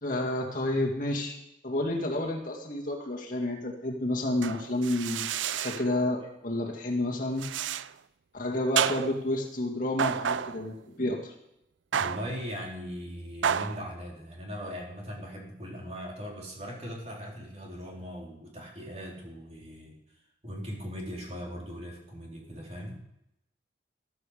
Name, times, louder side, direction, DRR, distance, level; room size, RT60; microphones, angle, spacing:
voice 1, 0.0-1.4 1.6-7.5 8.3-11.3, left 1 dB, 45° left, 0 dB, 2.2 m, -30 dB
sound 1, 4.4-5.9 7.4-7.9 8.8-9.3 10.0-10.7 11.9-12.4 13.4-13.8, right 8 dB, 90° right, 0.5 m, -30 dB
voice 2, 12.0-20.0 20.4-23.0, equal, 35° right, -2 dB, 4.1 m, -39 dB
14.0 x 14.0 x 5.1 m, 0.82 s
head